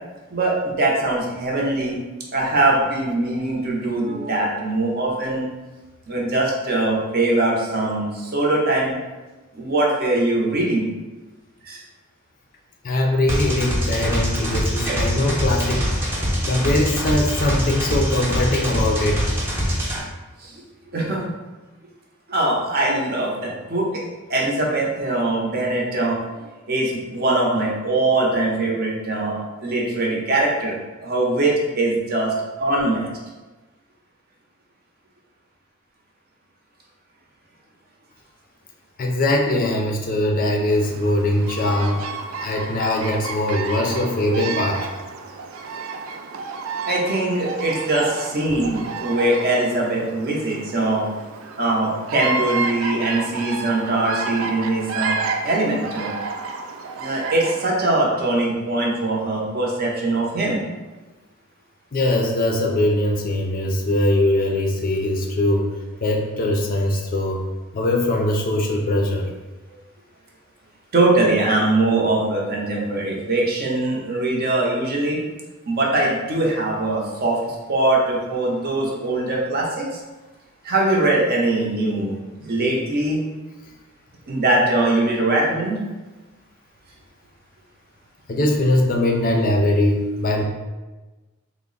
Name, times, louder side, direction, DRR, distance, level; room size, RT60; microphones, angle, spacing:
voice 1, 0.3-2.0 2.3-5.5 6.1-8.9 9.5-10.9 11.6-11.8 14.8-15.0 15.7-15.8 20.4-20.6 20.9-21.2 22.3-24.0 24.3-26.2 26.7-30.7 31.0-32.3 32.6-33.1 46.8-51.0 51.6-56.1 57.0-60.6 69.7-69.8 70.9-75.2 75.7-80.0 80.6-83.2 84.3-85.8, right 2 dB, 45° right, -2 dB, 0.7 m, -22 dB
voice 2, 12.8-15.9 16.4-19.2 39.0-42.0 42.4-44.8 61.9-65.7 66.0-67.4 67.7-69.3 88.3-90.4, left 1 dB, 40° left, 1 dB, 0.4 m, -21 dB
sound 1, 13.3-20.0, equal, 10° right, 0.7 m, -23 dB
Bird vocalization bird call bird song, 40.7-57.9, right 4 dB, 70° right, 0.3 m, -31 dB
3.4 x 2.0 x 3.8 m, 1.2 s
head